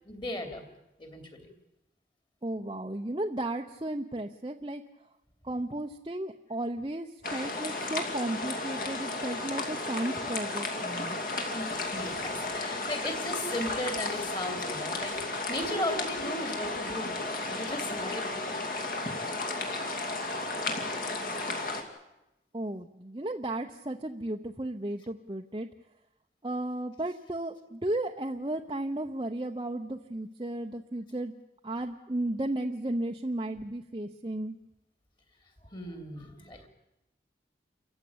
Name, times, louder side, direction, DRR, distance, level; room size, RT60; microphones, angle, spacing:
voice 1, 0.0-0.6 1.0-1.5 11.5-18.6 35.6-36.7, left 1 dB, 25° left, 6 dB, 2.9 m, -36 dB
voice 2, 2.4-4.8 5.4-11.2 22.5-25.7 26.4-31.3 31.6-34.6, right 1 dB, 25° right, 2 dB, 0.9 m, -34 dB
sound 1, 7.2-21.8, left 2 dB, 50° left, 2.7 m, -34 dB
28.5 x 15.0 x 8.8 m, 0.94 s
head